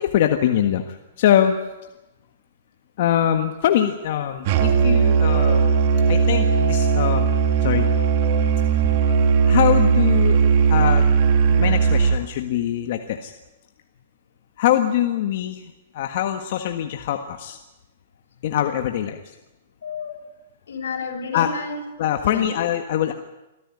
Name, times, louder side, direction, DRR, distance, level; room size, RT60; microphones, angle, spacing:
voice 1, 0.0-1.6 3.0-5.7 6.1-7.3 7.6-7.9 9.5-10.4 10.7-11.1 11.5-13.3 14.6-17.6 18.4-19.3 21.3-21.5 22.0-23.1, left 11 dB, 50° left, 5 dB, 1.6 m, -23 dB
Musical instrument, 4.5-12.3, right 5 dB, 45° right, 2.6 m, -18 dB
voice 2, 19.8-20.2 20.7-22.5, left 4 dB, 85° left, 3 dB, 6.4 m, -31 dB
26.0 x 15.0 x 9.8 m, 1.0 s
hypercardioid pair, 160°, 0 cm